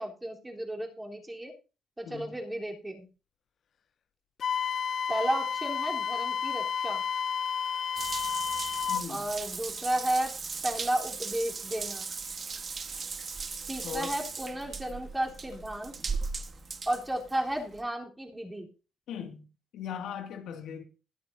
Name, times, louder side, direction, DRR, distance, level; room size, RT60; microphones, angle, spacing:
voice 1, 0.0-1.5 2.0-3.1 5.1-7.0 9.1-10.4 10.6-12.1 13.7-15.9 16.9-18.7, right 1 dB, 10° right, 3.5 m, -33 dB
voice 2, 2.0-2.4 8.9-9.3 13.8-14.2 19.1-19.5 19.7-20.8, left 8 dB, 80° left, 2.1 m, -39 dB
Wind instrument woodwind instrument, 4.4-9.1, left 7 dB, 60° left, 0.6 m, -31 dB
Water tap faucet / Bathtub (filling or washing) / Drip, 8.0-17.8, right 5 dB, 40° right, 1.3 m, -38 dB
21.0 x 9.6 x 2.7 m
cardioid pair, 90°, 0 cm